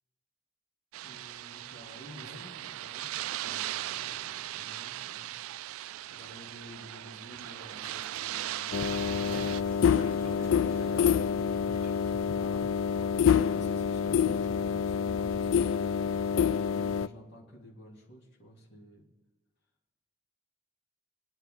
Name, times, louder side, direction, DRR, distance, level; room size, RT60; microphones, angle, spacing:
sound 1, 0.9-9.6, right 13 dB, 90° right, 0.3 m, -38 dB
voice 1, 1.0-5.3 6.1-10.6 12.4-12.7 12.9-19.0, equal, 55° left, -3 dB, 2.7 m, -51 dB
voice 2, 2.2-2.7, left 1 dB, 50° right, -2 dB, 3.1 m, -51 dB
sound 2, 7.1-11.9 12.2-12.3, equal, 30° right, 3.3 m, -51 dB
sound 3, 8.7-17.1, left 7 dB, 75° left, 0.4 m, -27 dB
25.5 x 9.0 x 3.8 m, 1.2 s
head